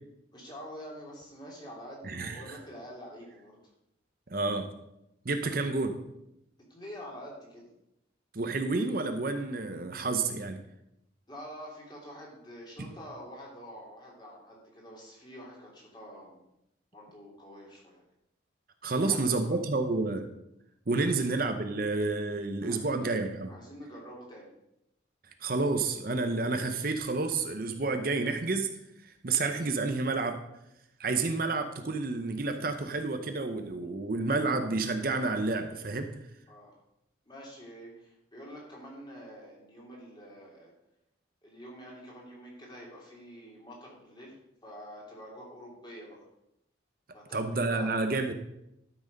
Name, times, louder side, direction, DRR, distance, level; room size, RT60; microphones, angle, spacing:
voice 1, 0.3-3.6 6.7-7.7 11.3-16.4 16.9-18.0 18.9-19.6 21.1-21.2 22.6-23.1 23.5-24.5 36.5-36.8 37.2-40.7 41.4-44.4 44.6-46.2 47.1-47.9, equal, 25° left, -3 dB, 3.0 m, -47 dB
voice 2, 2.0-2.4 4.3-4.8 5.2-6.0 8.3-10.6 12.8-12.9 18.8-20.3 20.9-23.5 25.4-28.8 29.0-30.4 31.0-36.1 47.3-48.3, right 3 dB, 50° right, 7 dB, 0.8 m, -30 dB
12.5 x 6.2 x 5.3 m, 0.84 s
head